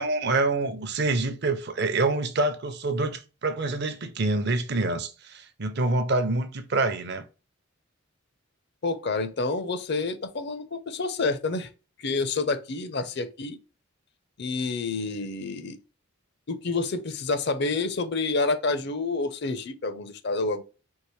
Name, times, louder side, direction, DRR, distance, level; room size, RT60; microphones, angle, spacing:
voice 1, 0.0-7.2, right 2 dB, 50° right, 0.6 m, -26 dB
voice 2, 8.8-11.7 12.0-13.6 14.4-15.8 16.5-20.6, left 3 dB, 55° left, 0.6 m, -28 dB
4.6 x 3.0 x 3.1 m
head